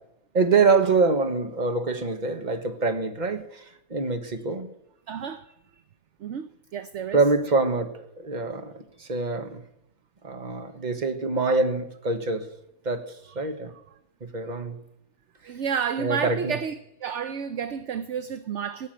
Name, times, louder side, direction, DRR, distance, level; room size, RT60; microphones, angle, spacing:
voice 1, 0.3-3.6 3.9-4.7 7.1-9.6 10.2-12.5 12.8-13.0 13.3-13.7 14.2-14.8 16.0-16.5, right 4 dB, 30° right, 1.3 m, -25 dB
voice 2, 5.1-5.5 6.2-7.2 15.4-18.9, right 7 dB, 60° right, 0.9 m, -31 dB
18.0 x 7.0 x 9.0 m
omnidirectional pair, 1.6 m